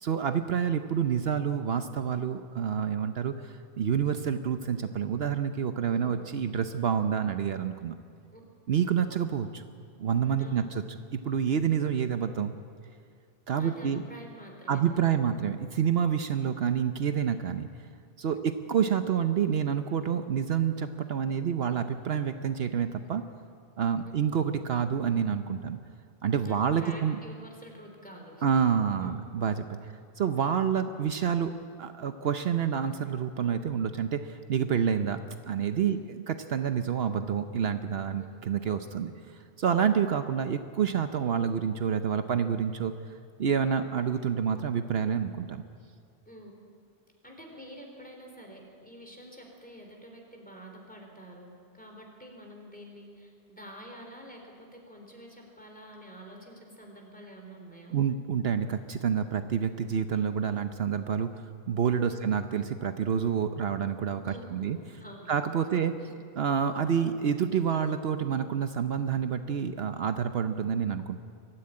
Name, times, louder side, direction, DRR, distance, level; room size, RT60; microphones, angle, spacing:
voice 1, 0.0-7.9 8.7-9.6 10.0-10.8 11.1-12.5 13.5-14.0 14.7-17.7 18.2-23.2 23.8-25.8 26.2-27.2 28.4-29.7 30.2-31.5 31.8-35.2 35.5-39.1 39.6-42.9 43.4-45.6 57.9-64.8 65.3-65.9 66.4-71.3, right 7 dB, 70° right, 9 dB, 1.0 m, -28 dB
voice 2, 10.4-10.7 13.6-15.2 26.4-28.4 29.0-29.2 29.8-29.9 35.8-36.1 38.2-38.3 46.2-46.5 47.2-58.0 62.1-62.3 64.2-65.4 65.7-65.8 66.1-66.2, equal, 10° left, 1 dB, 3.9 m, -48 dB
23.0 x 14.5 x 9.7 m, 2.2 s
omnidirectional pair, 1.1 m